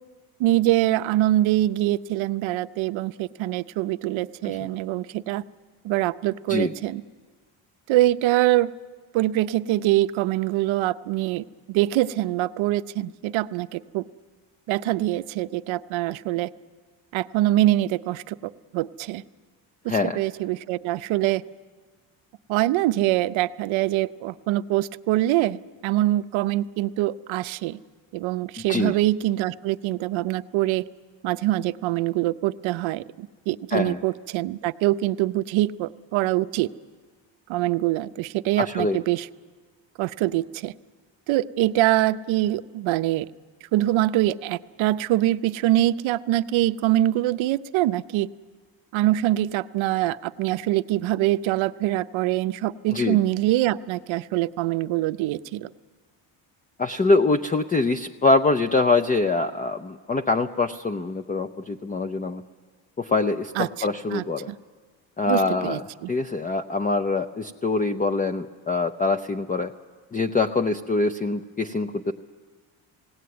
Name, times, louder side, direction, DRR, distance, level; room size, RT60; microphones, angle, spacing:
voice 1, 0.4-5.4 5.8-7.0 7.9-8.7 9.1-14.0 14.7-16.5 17.1-19.2 19.8-21.4 22.5-27.8 28.1-30.8 31.2-36.7 37.5-39.3 40.0-40.7 41.3-43.3 43.7-48.3 48.9-55.7 63.6-64.5 65.3-66.1, right 15 dB, 75° right, 11 dB, 0.7 m, -24 dB
voice 2, 19.9-20.2 28.7-29.0 33.7-34.0 38.6-39.0 52.9-53.2 56.8-62.4 63.0-64.5 65.2-65.8 66.1-69.7 70.1-72.1, left 3 dB, 20° left, 6 dB, 0.6 m, -24 dB
19.5 x 17.5 x 9.5 m, 1.5 s
cardioid pair, 95°, 47 cm